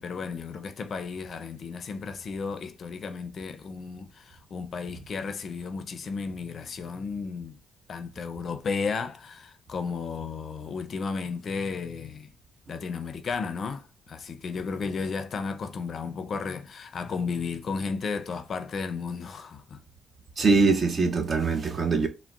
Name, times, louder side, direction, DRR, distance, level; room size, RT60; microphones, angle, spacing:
voice 1, 0.0-7.6 7.9-12.3 12.7-19.8, left 5 dB, 50° left, 0.4 m, -34 dB
voice 2, 20.4-22.1, right 4 dB, 40° right, 0.6 m, -22 dB
3.7 x 2.0 x 2.3 m
cardioid pair, 90°, 0 cm